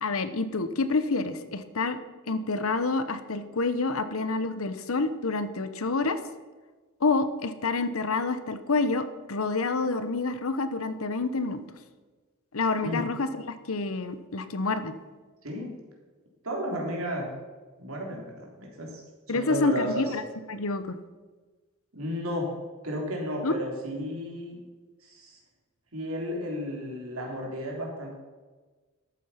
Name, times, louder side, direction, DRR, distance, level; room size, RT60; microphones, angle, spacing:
voice 1, 0.0-2.0 2.3-6.2 7.0-11.6 12.5-14.9 19.3-20.2 20.5-21.0 23.4-23.6, left 3 dB, 80° left, 11 dB, 1.0 m, -28 dB
voice 2, 15.4-15.7 16.4-17.3 17.8-19.0 19.3-20.0 21.9-22.5 22.8-24.6 25.0-25.4 25.9-28.1, equal, 85° right, -1 dB, 3.7 m, -33 dB
13.0 x 8.6 x 5.7 m, 1.3 s
head